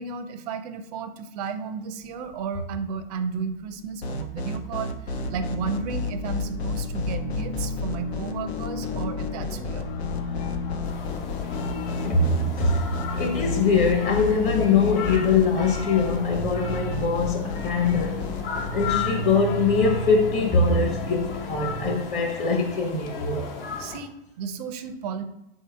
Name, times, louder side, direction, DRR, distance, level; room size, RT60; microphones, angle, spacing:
voice 1, 0.0-9.9 23.8-25.2, right 5 dB, 40° right, 0.4 m, -33 dB
sound 1, 4.0-19.0, left 4 dB, 85° left, 0.6 m, -32 dB
sound 2, 5.1-22.0, left 1 dB, 40° left, 1.0 m, -33 dB
sound 3, 10.8-24.0, left 6 dB, 65° left, 0.9 m, -36 dB
voice 2, 12.0-12.8 13.2-18.2 18.7-23.5, left 4 dB, 25° left, 0.7 m, -22 dB
3.3 x 2.8 x 4.3 m
hypercardioid pair, 115°, 31 cm